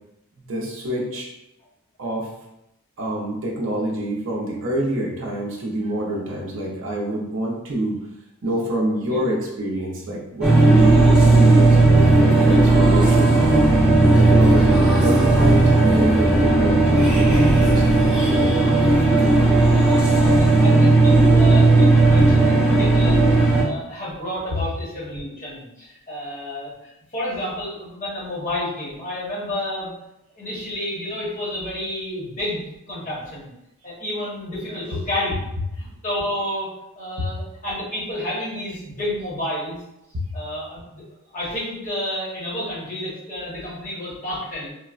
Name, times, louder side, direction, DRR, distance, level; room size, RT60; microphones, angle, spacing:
voice 1, 0.4-1.3 2.0-2.3 3.0-8.0 8.4-13.6 14.1-17.8 18.3-18.7 34.7-34.8 37.2-37.3 40.1-40.2, right 1 dB, 60° right, -2 dB, 0.5 m, -26 dB
sound 1, 10.4-23.6, right 2 dB, 5° right, 0.6 m, -15 dB
voice 2, 20.0-29.9 30.3-33.5 33.8-35.4 35.7-36.7 36.9-39.8 40.3-41.0 41.3-44.7, left 1 dB, 35° left, -8 dB, 1.1 m, -30 dB
3.2 x 2.0 x 2.4 m, 0.86 s
head